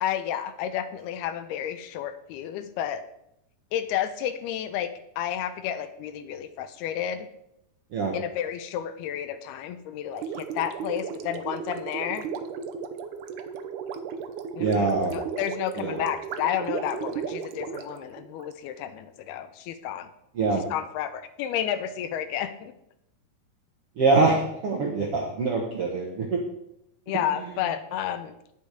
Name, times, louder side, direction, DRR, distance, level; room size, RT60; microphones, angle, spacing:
voice 1, 0.0-3.0 3.7-7.3 8.1-12.3 14.6-20.1 20.7-22.7 27.1-28.4, left 10 dB, 85° left, 11 dB, 2.6 m, -31 dB
Gurgling, 10.1-18.5, right 6 dB, 90° right, 1.7 m, -35 dB
voice 2, 14.6-15.1 15.8-16.0 20.3-20.6 24.0-26.4, right 3 dB, 70° right, -1 dB, 1.4 m, -24 dB
10.5 x 8.5 x 4.9 m, 0.78 s
omnidirectional pair, 4.6 m